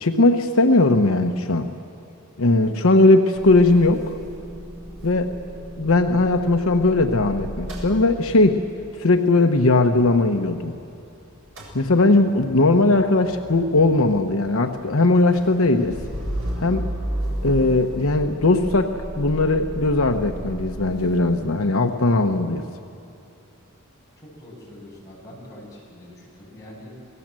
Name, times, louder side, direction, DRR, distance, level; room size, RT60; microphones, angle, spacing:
voice 1, 0.0-1.7 2.4-4.2 5.0-5.3 5.8-8.6 9.0-10.8 11.7-16.0 16.6-16.9 17.4-22.6, left 2 dB, 75° left, 5 dB, 1.0 m, -19 dB
Motor vehicle (road) / Engine starting / Idling, 3.3-11.1 11.3-21.2, equal, 65° right, 7.3 m, -34 dB
voice 2, 24.2-27.1, left 1 dB, 15° left, -5 dB, 7.9 m, -43 dB
29.0 x 19.0 x 7.6 m, 2.8 s
head